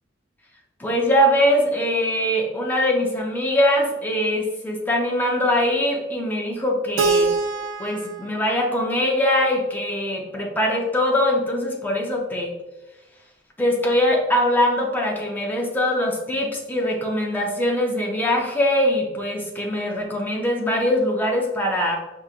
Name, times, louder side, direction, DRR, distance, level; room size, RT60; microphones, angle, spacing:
voice 1, 0.8-7.3 7.8-12.5 13.6-22.0, left 1 dB, 10° left, -1 dB, 0.6 m, -22 dB
Keyboard (musical), 7.0-9.9, right 4 dB, 80° right, 0.4 m, -26 dB
5.0 x 2.9 x 2.4 m, 1.0 s
head